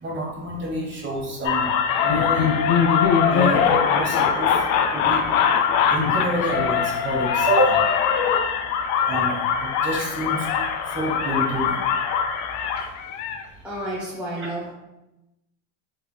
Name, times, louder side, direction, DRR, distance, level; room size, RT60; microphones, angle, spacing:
voice 1, 0.0-1.7 2.0-2.5 3.3-4.6 4.9-5.2 5.9-7.8 9.1-10.5 10.9-11.8 14.4-14.5, right 1 dB, 25° right, -1 dB, 0.9 m, -27 dB
sound 1, 1.4-13.4, left 7 dB, 60° left, 0.5 m, -22 dB
voice 2, 12.8-13.2 13.6-14.7, right 1 dB, 5° right, -7 dB, 0.5 m, -32 dB
3.4 x 3.1 x 2.2 m, 0.94 s
supercardioid pair, 115°, 41 cm